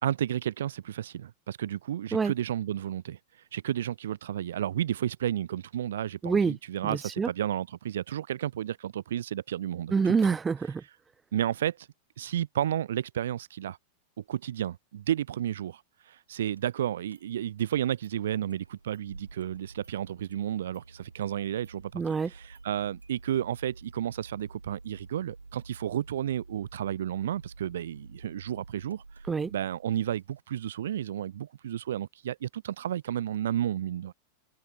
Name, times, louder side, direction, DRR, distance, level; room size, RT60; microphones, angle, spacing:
voice 1, 0.0-3.2 3.5-10.2 11.3-11.8 12.2-13.8 14.2-15.8 16.1-29.0 29.5-34.1, right 11 dB, 60° right, 1.3 m, -32 dB
voice 2, 6.2-6.6 6.8-7.3 9.9-10.8 21.9-22.3 29.3-29.5, right 5 dB, 15° right, 0.3 m, -26 dB
Engine starting, 16.6-16.7 17.1-17.7 18.0-18.1 18.5-30.4, right 3 dB, 80° right, 2.5 m, -50 dB
figure-of-eight pair, 90°, 0 cm